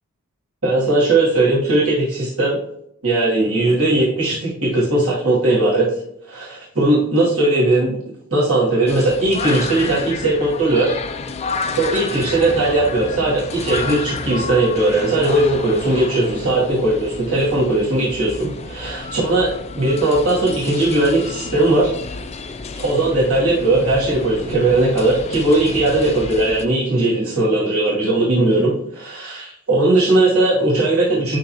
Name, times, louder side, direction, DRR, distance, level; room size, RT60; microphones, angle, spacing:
voice 1, 0.6-2.6 3.0-5.9 6.3-8.0 8.3-10.9 11.8-21.9 22.8-31.4, right 2 dB, 75° right, -8 dB, 2.7 m, -18 dB
sound 1, 8.9-26.6, left 4 dB, 30° left, 0.5 m, -31 dB
11.5 x 3.8 x 3.0 m, 0.75 s
head